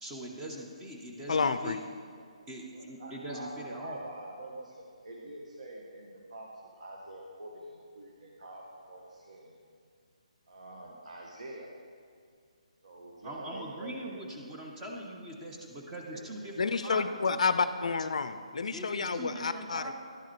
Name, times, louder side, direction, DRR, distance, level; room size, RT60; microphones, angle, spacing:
voice 1, 0.0-1.8 2.5-4.0 13.2-17.0 17.3-17.4 18.7-19.9, right 1 dB, 15° right, -1 dB, 0.7 m, -42 dB
voice 2, 1.3-1.8 16.6-19.8, left 4 dB, 70° left, 12 dB, 0.4 m, -29 dB
voice 3, 2.7-9.6 10.5-11.7 12.8-14.2 15.1-15.4 16.1-16.3 16.7-17.0 19.1-19.2, right 1 dB, 75° right, -1 dB, 0.9 m, -46 dB
10.5 x 4.7 x 4.5 m, 2.3 s
figure-of-eight pair, 150°, 4 cm